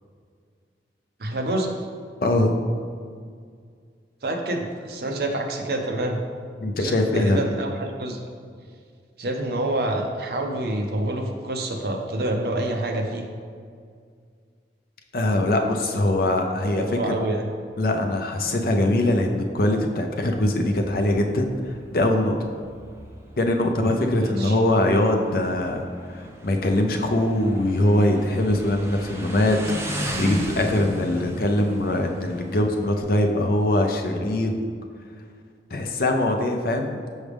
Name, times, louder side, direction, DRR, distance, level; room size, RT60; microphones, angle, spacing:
voice 1, 1.2-1.7 4.2-6.2 6.8-8.3 9.2-13.3 15.6-15.7 16.7-17.4 24.2-24.6, right 1 dB, 60° right, 3 dB, 0.6 m, -27 dB
voice 2, 2.2-2.5 6.6-7.4 15.1-17.0 17.8-21.5 21.9-22.4 23.4-29.6 29.8-34.6 35.7-37.0, left 1 dB, 55° left, 4 dB, 0.5 m, -22 dB
Motorcycle, 20.1-33.0, equal, 15° right, 0.5 m, -36 dB
6.3 x 4.8 x 3.4 m, 2.1 s
head